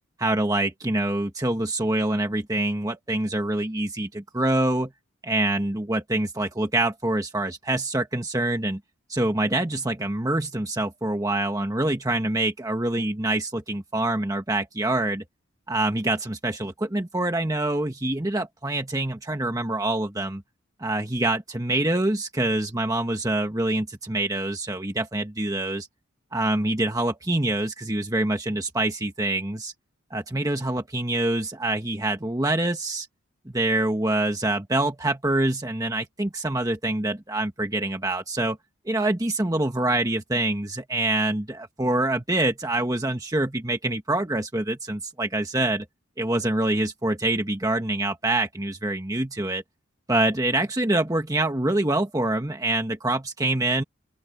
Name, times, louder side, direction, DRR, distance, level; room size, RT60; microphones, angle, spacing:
voice 1, 0.2-4.9 5.2-8.8 9.1-15.2 15.7-20.4 20.8-25.9 26.3-29.7 30.1-33.1 33.5-38.6 38.9-45.9 46.2-49.6 50.1-53.8, right 2 dB, 15° right, 1.1 m, -25 dB
open air
head